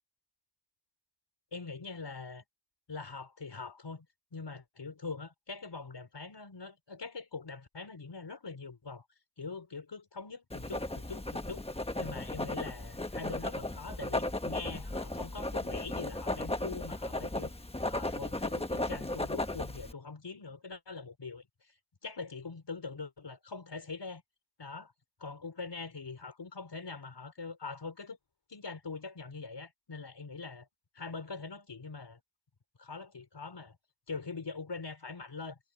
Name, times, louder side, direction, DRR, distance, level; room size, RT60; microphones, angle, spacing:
voice 1, 1.5-2.4 2.9-4.1 4.3-9.0 9.4-11.6 12.0-17.5 17.9-21.4 22.0-24.2 24.6-24.9 25.2-28.2 28.5-30.6 31.0-32.2 32.8-33.8 34.1-35.6, left 4 dB, 70° left, 5.2 m, -43 dB
Writing, 10.5-19.9, left 1 dB, 15° left, 1.2 m, -36 dB
wide cardioid pair, 95°, 44 cm